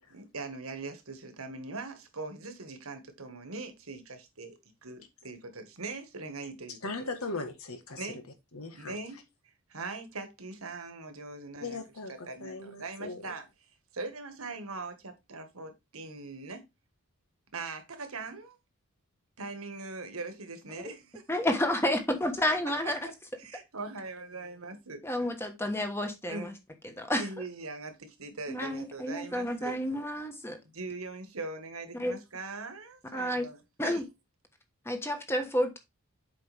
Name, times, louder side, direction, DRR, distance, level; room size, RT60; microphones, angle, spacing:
voice 1, 0.1-7.1 8.0-8.2 8.7-9.2 9.7-11.8 12.1-13.5 13.9-16.7 17.5-18.6 19.4-21.2 23.4-25.0 26.3-26.5 27.1-29.8 30.7-34.0, right 3 dB, 75° right, 1.6 m, -41 dB
voice 2, 6.8-8.0 8.5-9.0 11.6-13.2, left 3 dB, 80° left, 1.6 m, -38 dB
voice 3, 21.3-23.0 25.0-26.5 26.8-27.3 28.5-30.6 32.0-32.2 33.1-33.5 33.8-34.1 34.8-35.8, left 1 dB, 10° left, 1.3 m, -30 dB
7.8 x 5.1 x 3.4 m
head